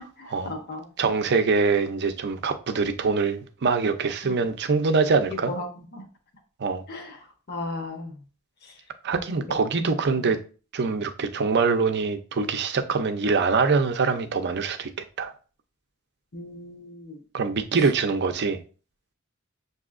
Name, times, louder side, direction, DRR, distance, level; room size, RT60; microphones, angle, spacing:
voice 1, 0.2-0.9 4.2-4.4 5.3-6.0 6.9-8.2 8.6-8.8 9.5-9.6 10.2-10.3 16.3-17.2 17.8-17.9, left 2 dB, 50° left, 0.9 m, -36 dB
voice 2, 1.0-5.5 6.6-6.8 9.0-10.4 10.7-14.9 15.2-15.3 17.3-18.6, right 4 dB, 55° right, 0.5 m, -24 dB
6.9 x 2.7 x 2.5 m
head